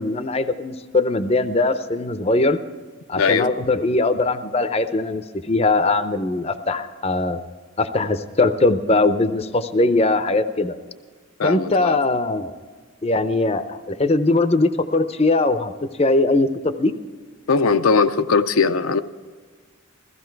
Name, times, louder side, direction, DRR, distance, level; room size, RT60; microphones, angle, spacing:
voice 1, 0.0-2.6 3.1-7.4 7.8-10.7 11.4-12.5 13.0-15.7 16.0-16.9, left 2 dB, 30° left, 11 dB, 0.6 m, -20 dB
voice 2, 3.1-3.5 11.4-12.0 17.5-19.0, left 5 dB, 85° left, 9 dB, 0.6 m, -19 dB
16.0 x 15.5 x 4.6 m, 1.5 s
head